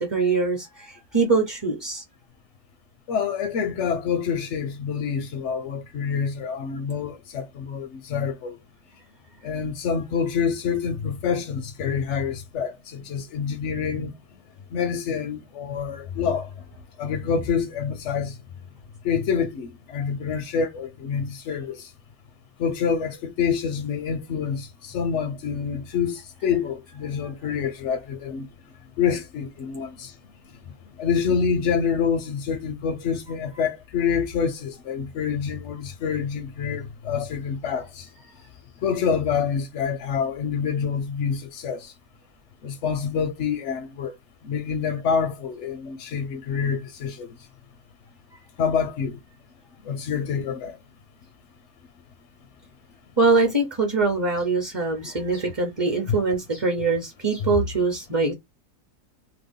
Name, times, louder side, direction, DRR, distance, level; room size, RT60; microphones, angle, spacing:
voice 1, 0.0-2.0 53.2-58.3, right 3 dB, 25° right, 0.6 m, -23 dB
voice 2, 3.1-8.6 9.4-14.1 14.7-16.5 17.0-18.3 19.0-21.9 22.6-28.5 29.0-30.1 31.0-38.1 38.8-41.9 42.6-44.1 44.4-47.3 48.6-49.2 49.8-50.8 55.4-55.5 56.1-56.2 56.8-56.9 57.4-57.6, left 6 dB, 65° left, 0.7 m, -27 dB
2.9 x 2.2 x 3.6 m
omnidirectional pair, 1.7 m